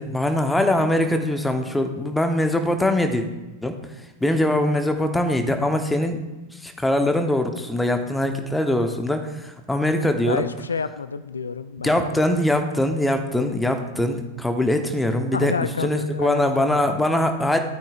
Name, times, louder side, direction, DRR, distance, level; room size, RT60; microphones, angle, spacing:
voice 1, 0.0-3.3 3.6-3.8 4.2-6.2 6.5-10.4 11.8-15.5 15.8-17.6, left 1 dB, 5° left, 6 dB, 1.0 m, -22 dB
voice 2, 10.3-12.1 15.3-16.8, left 5 dB, 75° left, 14 dB, 0.4 m, -29 dB
16.5 x 8.8 x 2.5 m, 1.1 s
figure-of-eight pair, 90°, 0 cm